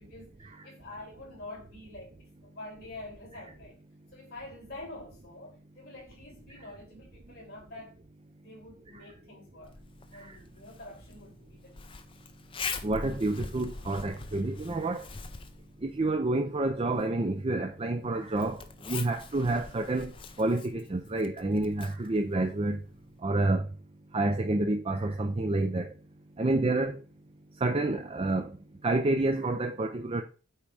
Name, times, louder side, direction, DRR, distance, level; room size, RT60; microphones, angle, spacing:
voice 1, 0.0-3.8 4.1-8.0 8.4-9.7 10.1-11.9 26.4-26.6, left 2 dB, 45° left, 3.9 m, -47 dB
Zipper (clothing), 9.6-23.2, left 4 dB, 25° left, 0.5 m, -44 dB
voice 2, 12.8-15.0 15.8-18.6 18.9-20.1 20.4-22.8 23.2-23.7 24.1-25.9 26.4-27.0 27.6-28.5 28.8-30.2, right 2 dB, 25° right, 0.5 m, -28 dB
8.4 x 3.0 x 4.8 m
head